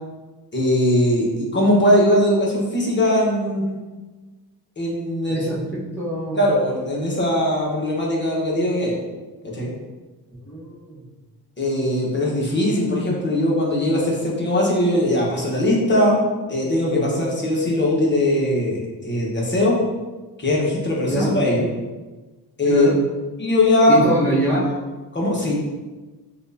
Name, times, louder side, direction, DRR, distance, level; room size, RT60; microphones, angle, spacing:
voice 1, 0.5-3.8 4.8-5.4 6.4-8.9 9.4-9.7 11.6-19.8 20.4-21.7 22.6-22.9 23.4-24.0 24.5-24.7 25.1-25.5, left 1 dB, 25° left, -4 dB, 1.1 m, -20 dB
voice 2, 5.3-6.4 10.5-11.0 21.1-21.3 22.7-23.0 23.9-24.7, right 2 dB, 5° left, -8 dB, 1.2 m, -24 dB
6.1 x 2.5 x 2.7 m, 1.3 s
cardioid pair, 110°, 41 cm